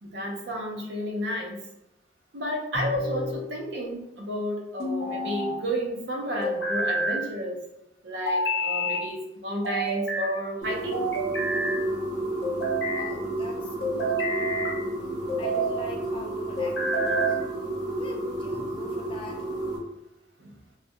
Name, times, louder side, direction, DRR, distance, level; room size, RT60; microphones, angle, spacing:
voice 1, 0.0-1.6 2.3-7.6 8.0-11.0 20.4-20.5, equal, 75° right, 1 dB, 0.6 m, -31 dB
sound 1, 2.7-3.4 4.8-5.6 6.4-7.2 8.3-9.0 9.6-10.3 10.9-11.8 12.4-13.1 13.8-14.8 15.3-15.8 16.6-17.4, right 1 dB, 65° left, 0.7 m, -28 dB
sound 2, 10.6-19.8, right 1 dB, 25° right, 0.7 m, -32 dB
voice 2, 12.9-14.5 15.4-17.4 18.0-19.5, left 2 dB, 30° left, 1 dB, 0.3 m, -43 dB
2.4 x 2.1 x 2.6 m, 0.87 s
head